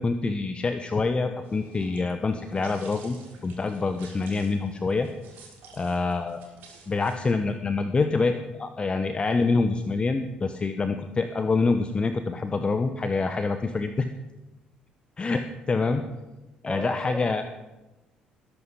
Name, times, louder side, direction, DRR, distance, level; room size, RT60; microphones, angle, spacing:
voice 1, 0.0-3.2 3.4-5.1 5.7-6.4 6.9-14.1 15.2-16.0 16.6-17.4, left 4 dB, 25° left, 9 dB, 1.1 m, -26 dB
sound 1, 1.4-7.6, right 4 dB, 55° right, 6.0 m, -51 dB
voice 2, 16.7-17.4, equal, 5° right, 0 dB, 7.6 m, -36 dB
20.5 x 11.0 x 5.5 m, 1.0 s
figure-of-eight pair, 50°, 4 cm